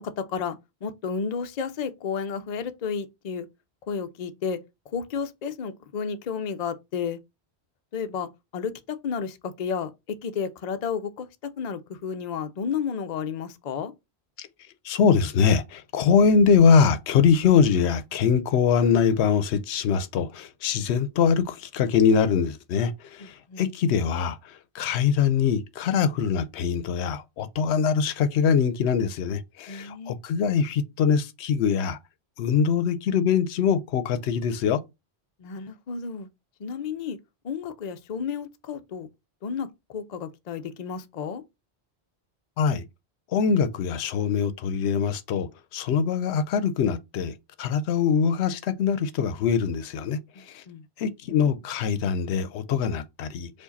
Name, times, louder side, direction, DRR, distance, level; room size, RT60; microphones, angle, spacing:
voice 1, 0.0-3.5 3.9-4.6 4.9-7.2 7.9-11.3 11.6-13.9 23.2-23.6 29.7-30.2 35.4-36.3 36.6-37.2 37.4-39.1 39.4-41.4 50.3-50.8, left 6 dB, 50° left, 0.6 m, -32 dB
voice 2, 14.8-32.0 32.4-34.8 42.6-42.8 43.3-50.2 50.5-50.6 51.0-53.5, left 6 dB, 85° left, 0.8 m, -23 dB
4.7 x 2.5 x 3.9 m
omnidirectional pair, 1.1 m